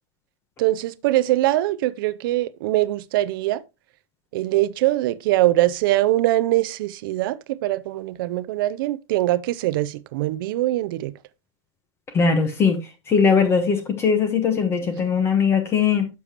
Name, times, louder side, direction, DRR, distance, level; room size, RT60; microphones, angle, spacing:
voice 1, 0.6-3.6 4.3-11.1, right 16 dB, 45° right, 0.5 m, -22 dB
voice 2, 12.1-12.8 13.1-16.1, left 6 dB, 15° left, 1.1 m, -20 dB
9.7 x 6.9 x 2.9 m
supercardioid pair, 170°, 16 cm